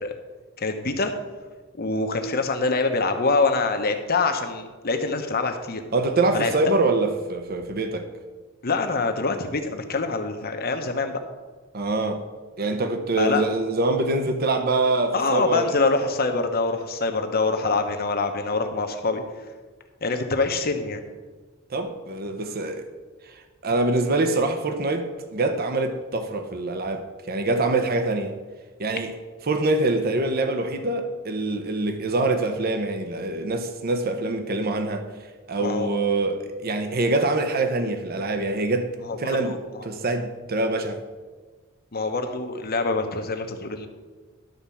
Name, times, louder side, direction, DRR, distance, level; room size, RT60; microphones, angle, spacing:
voice 1, 0.6-1.1 1.8-5.8 6.3-6.5 8.6-11.2 13.2-13.4 15.1-19.2 20.0-21.0 35.6-35.9 39.1-39.9 41.9-43.9, left 3 dB, 50° left, 1.0 m, -25 dB
voice 2, 5.9-8.1 11.7-12.3 12.6-15.8 21.7-22.9 23.3-28.4 28.8-29.1 29.5-35.1 35.5-39.6 39.8-41.0, right 2 dB, 50° right, 0.8 m, -25 dB
11.5 x 4.3 x 7.1 m
head